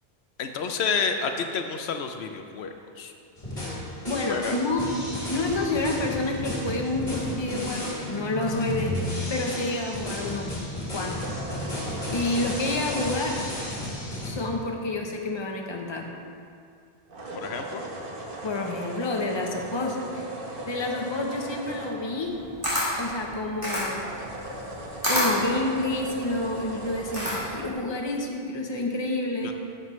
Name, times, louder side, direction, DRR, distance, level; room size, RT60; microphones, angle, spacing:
voice 1, 0.4-3.1 4.3-4.6 5.5-5.7 17.4-17.8 29.4-29.5, left 5 dB, 85° left, 6 dB, 0.9 m, -30 dB
sound 1, 3.4-14.3, left 1 dB, 50° left, 2.3 m, -33 dB
voice 2, 4.1-4.9 5.3-10.6 10.9-11.3 12.1-13.4 14.2-16.1 18.4-20.2 20.7-22.3 23.0-24.0 25.1-29.5, left 2 dB, 30° left, 1 dB, 0.8 m, -29 dB
sound 2, 11.2-14.6 17.1-23.2 23.6-27.8, right 1 dB, 60° right, 1.2 m, -39 dB
Camera, 22.2-27.7, left 1 dB, 20° right, 2.3 m, -29 dB
11.0 x 7.8 x 3.1 m, 2.4 s
omnidirectional pair, 1.1 m